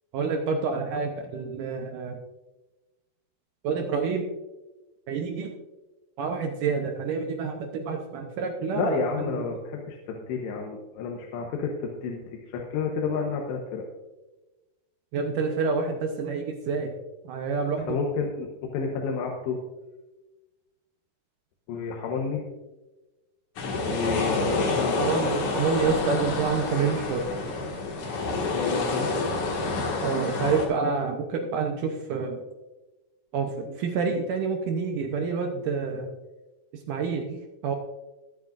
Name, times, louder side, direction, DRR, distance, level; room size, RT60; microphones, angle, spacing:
voice 1, 0.1-2.2 3.6-4.3 5.1-5.5 6.2-9.4 15.1-17.0 17.3-18.0 25.0-27.3 30.0-32.4 33.3-36.1 36.9-37.7, right 5 dB, 75° right, 3 dB, 1.9 m, -28 dB
voice 2, 8.7-13.8 17.9-19.6 21.7-22.5 23.8-25.1 28.5-29.1, left 5 dB, 90° left, 0 dB, 3.3 m, -30 dB
sound 1, 23.6-30.7, left 3 dB, 55° left, 2.9 m, -28 dB
22.0 x 8.5 x 2.5 m, 1.1 s
omnidirectional pair, 4.9 m